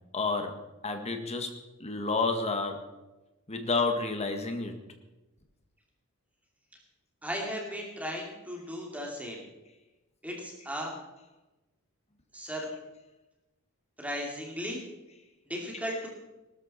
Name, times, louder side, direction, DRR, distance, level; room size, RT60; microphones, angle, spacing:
voice 1, 0.1-1.5 1.8-2.8 3.5-4.7, left 3 dB, 30° left, 5 dB, 1.8 m, -30 dB
voice 2, 7.2-9.4 10.2-10.9 12.3-12.7 14.0-14.8 15.5-16.1, equal, 5° right, -1 dB, 2.7 m, -36 dB
18.5 x 13.0 x 4.3 m, 1.0 s
head